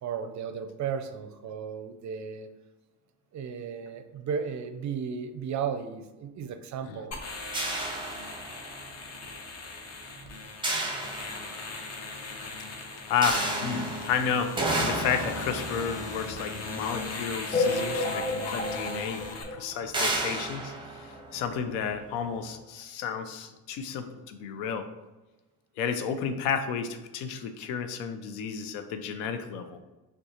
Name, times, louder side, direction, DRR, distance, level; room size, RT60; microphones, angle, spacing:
voice 1, 0.0-2.5 3.3-7.1, right 7 dB, 45° right, 9 dB, 0.5 m, -34 dB
sound 1, 7.1-19.4, left 3 dB, 40° left, 0.9 m, -39 dB
sound 2, 7.5-8.9 10.6-11.9 13.2-17.7 18.6-18.7 19.1-19.2 19.9-21.9, right 2 dB, 10° right, 0.8 m, -33 dB
voice 2, 12.8-24.9 25.8-29.8, left 7 dB, 80° left, 8 dB, 0.6 m, -32 dB
sound 3, 17.5-20.4 20.9-21.0 21.1-21.3 21.6-21.7 22.5-22.6 23.1-23.2, left 2 dB, 15° left, 0.5 m, -31 dB
6.1 x 2.3 x 2.8 m, 1.1 s
supercardioid pair, 70°, 41 cm